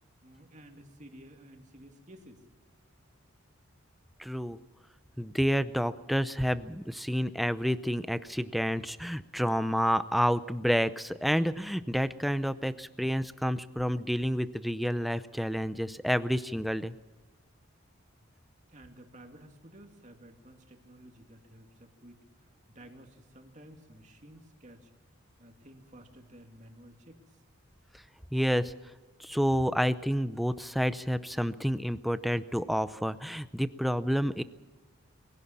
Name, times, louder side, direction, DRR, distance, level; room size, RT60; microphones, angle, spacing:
voice 1, 0.2-2.4 18.7-24.9 25.4-27.4, right 1 dB, 35° right, 3 dB, 2.5 m, -53 dB
voice 2, 4.2-4.6 5.2-16.9 28.3-28.7 29.2-34.4, equal, ahead, 13 dB, 0.5 m, -29 dB
23.0 x 16.5 x 7.3 m, 1.3 s
head